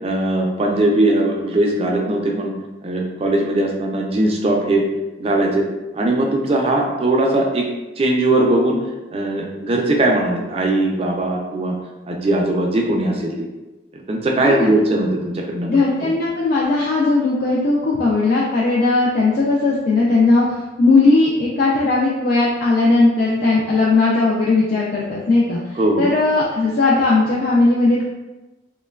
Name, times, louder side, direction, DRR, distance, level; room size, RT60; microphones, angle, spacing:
voice 1, 0.0-2.5 2.8-4.8 5.2-5.6 5.9-7.7 8.0-8.8 9.1-11.7 12.1-13.5 14.1-16.1 25.8-26.1, right 1 dB, 30° right, 0 dB, 0.3 m, -19 dB
voice 2, 15.7-28.0, left 3 dB, 50° left, -4 dB, 0.3 m, -17 dB
3.0 x 2.1 x 2.2 m, 1.1 s
head